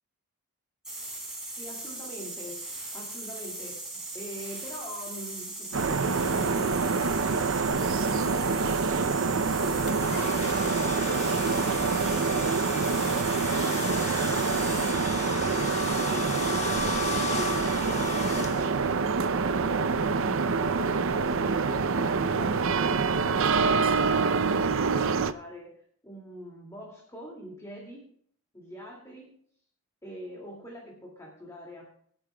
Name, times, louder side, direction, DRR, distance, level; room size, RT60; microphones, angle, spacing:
sound 1, 0.8-15.0, right 2 dB, 5° right, 4.4 m, -39 dB
voice 1, 1.6-7.6 8.0-13.3 13.5-28.1 28.5-29.4 30.0-31.9, equal, 15° left, -2 dB, 2.4 m, -44 dB
sound 2, 5.7-25.3, right 4 dB, 60° right, 0.6 m, -26 dB
sound 3, 9.9-19.0, left 4 dB, 30° left, 1.3 m, -36 dB
26.0 x 8.7 x 2.3 m, 0.62 s
head